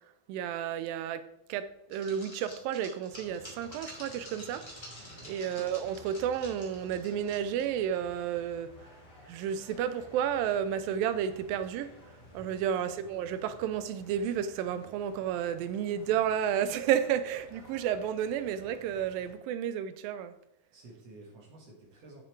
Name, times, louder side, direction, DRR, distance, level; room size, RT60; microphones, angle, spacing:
voice 1, 0.3-4.6 5.3-8.7 9.3-11.9 12.3-20.4, right 9 dB, 90° right, 12 dB, 2.4 m, -31 dB
sound 1, 1.9-7.7 8.0-8.1 8.5-8.6 9.7-10.0, equal, 10° left, 1.3 m, -49 dB
sound 2, 3.1-19.3, equal, 30° left, 2.6 m, -54 dB
voice 2, 5.0-5.3 12.4-12.7 20.7-22.2, right 2 dB, 50° right, 0 dB, 2.4 m, -52 dB
8.8 x 6.8 x 3.3 m, 0.81 s
omnidirectional pair, 4.0 m